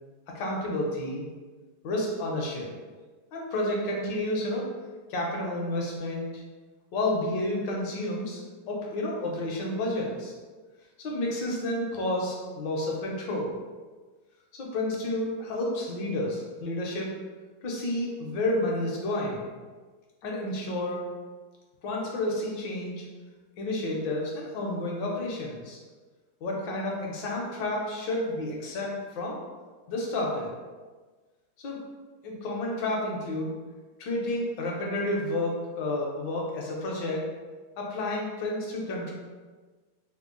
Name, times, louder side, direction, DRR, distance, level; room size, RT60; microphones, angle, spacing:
voice 1, 0.3-1.3 1.8-2.7 3.3-4.7 5.1-6.4 6.9-8.4 8.7-10.3 11.0-13.5 14.5-17.2 17.6-19.5 20.2-21.0 21.8-23.0 23.6-25.8 26.4-29.4 29.9-30.5 31.6-31.8 32.2-33.6 34.0-37.3 37.8-39.1, left 1 dB, 70° left, -2 dB, 1.3 m, -30 dB
3.6 x 2.0 x 3.6 m, 1.4 s
omnidirectional pair, 2.2 m